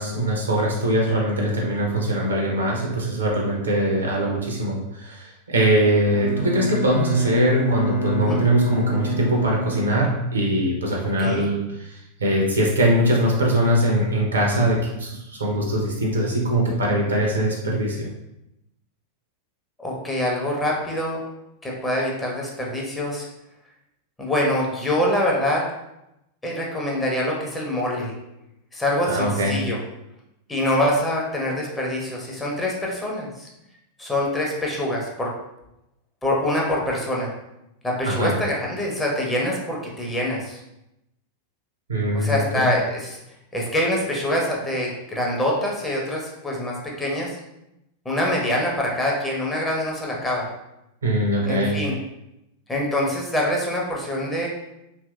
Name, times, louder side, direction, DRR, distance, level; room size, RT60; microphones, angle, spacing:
voice 1, 0.0-18.1 29.0-29.6 38.1-38.3 41.9-42.7 51.0-51.8, right 1 dB, 70° right, -1 dB, 0.6 m, -22 dB
Bowed string instrument, 6.1-10.8, right 1 dB, 55° left, 0.6 m, -26 dB
voice 2, 11.2-11.5 19.8-21.2 21.6-23.3 24.2-25.6 26.4-28.1 28.7-29.8 30.5-33.5 34.0-35.3 36.2-37.3 37.8-40.6 42.1-43.2 43.5-47.4 48.0-50.5 51.4-51.9 52.7-54.5, left 1 dB, 10° left, -3 dB, 0.6 m, -25 dB
2.8 x 2.6 x 2.3 m, 0.88 s
figure-of-eight pair, 90°, 0 cm